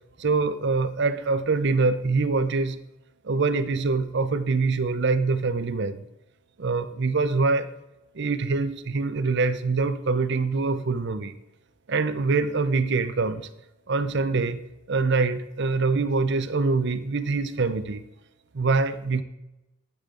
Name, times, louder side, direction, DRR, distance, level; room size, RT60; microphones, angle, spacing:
voice 1, 0.2-2.8 3.2-6.0 6.6-7.7 8.2-11.4 11.9-13.5 13.9-14.6 14.9-18.0 18.5-19.2, right 4 dB, 55° right, 12 dB, 0.6 m, -24 dB
11.5 x 8.5 x 3.8 m, 0.93 s
head